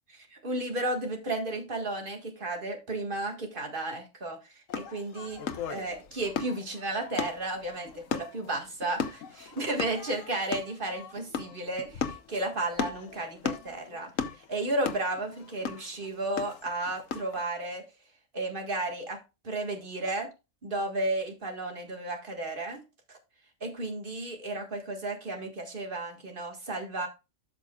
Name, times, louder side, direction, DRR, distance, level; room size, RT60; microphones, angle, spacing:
voice 1, 0.3-5.4 5.7-17.8 18.3-20.3 20.6-22.8 23.1-23.2 23.6-27.1, right 2 dB, 40° right, 4 dB, 1.9 m, -33 dB
sound 1, 4.7-17.4, left 7 dB, 85° left, 1.2 m, -37 dB
13.0 x 6.0 x 2.3 m, 0.26 s
omnidirectional pair, 1.3 m